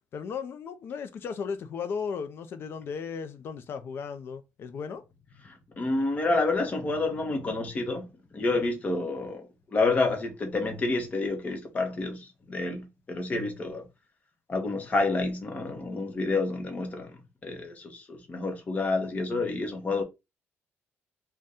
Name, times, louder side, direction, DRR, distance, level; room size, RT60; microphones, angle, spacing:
voice 1, 0.1-5.0, left 6 dB, 50° left, 0.5 m, -35 dB
voice 2, 5.4-13.9 14.5-17.1 17.4-20.0, left 3 dB, 30° left, 0.9 m, -29 dB
2.6 x 2.2 x 3.5 m
cardioid pair, 125°, 5 cm